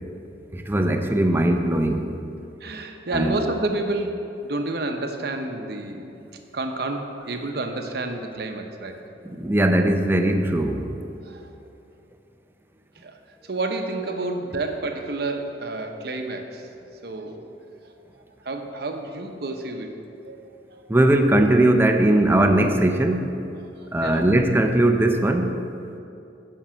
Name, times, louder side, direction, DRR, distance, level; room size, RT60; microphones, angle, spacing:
voice 1, 0.5-2.1 3.1-3.4 9.2-10.9 20.9-23.3 23.9-25.6, right 1 dB, 15° right, 5 dB, 0.6 m, -19 dB
voice 2, 2.6-6.1 6.5-9.0 11.2-11.5 13.0-13.1 13.4-16.7 17.0-17.5 17.8-17.9 18.4-19.9 20.2-20.5 23.8-24.3, right 2 dB, 65° right, 5 dB, 0.8 m, -29 dB
10.5 x 5.5 x 6.2 m, 2.7 s
head